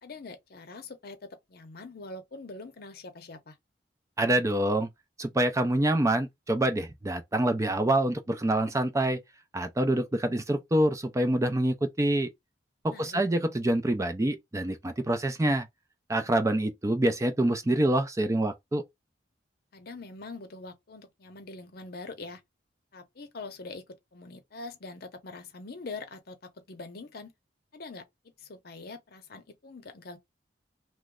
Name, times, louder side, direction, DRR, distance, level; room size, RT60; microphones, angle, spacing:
voice 1, 0.0-3.6 12.9-13.2 19.7-22.4 22.9-27.3 27.7-28.1 28.4-30.2, left 3 dB, 60° left, 0.7 m, -43 dB
voice 2, 4.2-4.9 5.2-9.2 9.5-12.3 12.8-15.7 16.1-18.8, right 1 dB, 15° right, 0.4 m, -26 dB
3.0 x 2.1 x 3.6 m
head